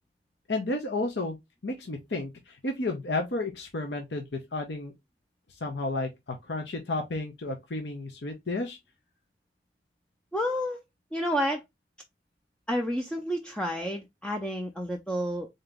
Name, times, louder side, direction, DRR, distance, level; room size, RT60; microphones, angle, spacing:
voice 1, 0.5-1.4 1.6-4.9 5.5-8.8, left 2 dB, 75° left, 0.8 m, -32 dB
voice 2, 10.3-10.8 11.1-11.6 12.7-15.5, equal, 5° left, 0.4 m, -30 dB
3.9 x 2.8 x 3.5 m
head